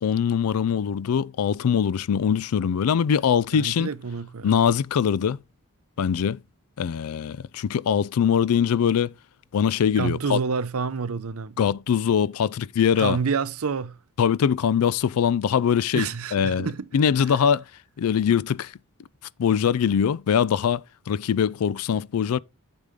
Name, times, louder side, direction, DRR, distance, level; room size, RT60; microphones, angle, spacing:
voice 1, 0.0-3.9 4.4-5.4 6.0-6.4 6.8-9.1 9.5-10.4 11.6-13.2 14.2-16.1 16.3-16.7 16.9-17.6 18.0-18.7 19.4-22.4, left 7 dB, 85° left, 0.4 m, -22 dB
voice 2, 3.5-4.6 10.0-11.6 13.0-14.0 15.9-16.9, right 5 dB, 85° right, 0.6 m, -28 dB
8.3 x 6.9 x 3.6 m
head